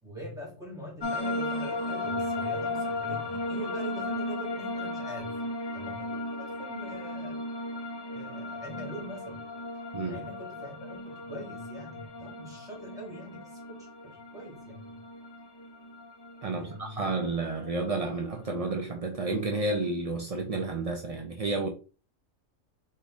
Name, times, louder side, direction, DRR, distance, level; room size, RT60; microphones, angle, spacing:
voice 1, 0.0-5.4 5.7-7.5 8.1-9.5 10.0-15.0 16.5-17.1, equal, 5° right, 1.9 m, -43 dB
sound 1, 1.0-18.7, left 2 dB, 30° left, 0.4 m, -36 dB
voice 2, 16.4-21.7, right 3 dB, 55° right, 0.4 m, -31 dB
4.0 x 3.7 x 3.6 m
omnidirectional pair, 1.4 m